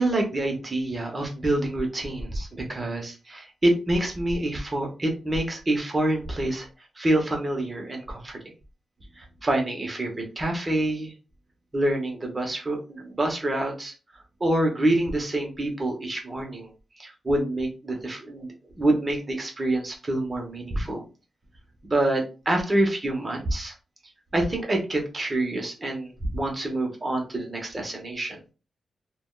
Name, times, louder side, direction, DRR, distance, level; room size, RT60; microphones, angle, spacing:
voice 1, 0.0-6.7 7.0-8.4 9.2-11.1 11.7-13.9 14.4-16.7 17.0-21.0 21.8-23.7 24.3-28.4, right 1 dB, 25° right, 1 dB, 0.9 m, -26 dB
3.4 x 2.2 x 2.3 m, 0.33 s
wide cardioid pair, 105°, 0 cm